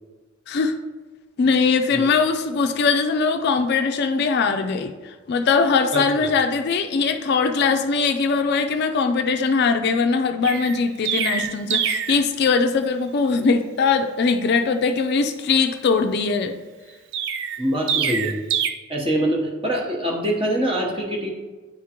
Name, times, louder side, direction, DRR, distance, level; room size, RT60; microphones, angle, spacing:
voice 1, 1.4-4.9 5.3-16.5, left 4 dB, 50° left, 7 dB, 0.3 m, -21 dB
voice 2, 5.9-6.2 17.6-18.3 18.9-21.3, right 1 dB, 25° right, -1 dB, 0.9 m, -24 dB
Chirp tweet, 10.4-12.2 17.1-18.7, right 7 dB, 60° right, 0.4 m, -25 dB
9.3 x 3.6 x 2.9 m, 1.3 s
head